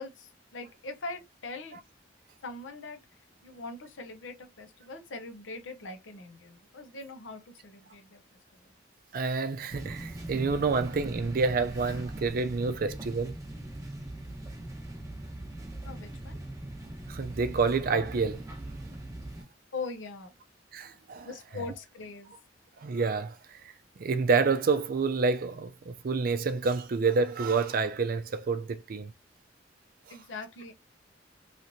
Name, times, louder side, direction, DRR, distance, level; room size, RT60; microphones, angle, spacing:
voice 1, 0.0-1.8 2.4-3.0 3.4-8.2 8.5-8.7 15.8-16.4 19.7-20.3 21.2-22.3 30.1-30.7, left 3 dB, 85° left, 0.7 m, -41 dB
voice 2, 9.1-13.4 17.1-18.5 20.7-21.3 22.8-29.1 30.1-30.2, right 4 dB, 50° right, 0.4 m, -28 dB
sound 1, 9.7-19.4, right 1 dB, 20° right, 0.9 m, -41 dB
3.2 x 2.9 x 2.6 m
head